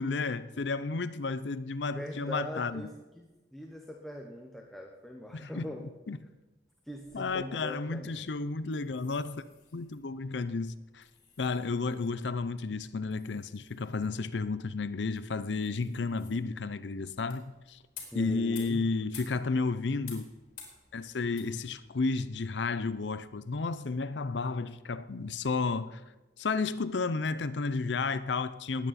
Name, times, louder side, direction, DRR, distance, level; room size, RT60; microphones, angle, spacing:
voice 1, 0.0-2.9 5.3-5.7 6.1-6.2 7.1-9.4 9.7-11.0 11.4-17.8 18.1-20.2 20.9-26.0 26.4-28.9, left 4 dB, 85° left, 0.6 m, -32 dB
voice 2, 1.9-2.9 3.1-5.8 6.9-8.3 18.1-18.8, equal, ahead, 1.0 m, -41 dB
sound 1, 6.9-23.7, left 6 dB, 55° left, 4.0 m, -55 dB
20.0 x 9.2 x 4.2 m
head